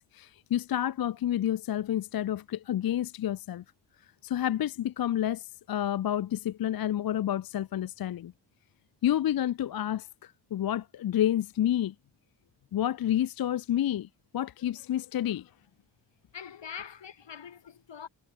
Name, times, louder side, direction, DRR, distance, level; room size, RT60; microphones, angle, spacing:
voice 1, 0.0-3.6 4.2-8.3 9.0-11.9 12.7-15.5, left 11 dB, 55° left, 0.5 m, -29 dB
voice 2, 16.3-18.1, left 7 dB, 85° left, 3.9 m, -43 dB
wide cardioid pair, 100°, 43 cm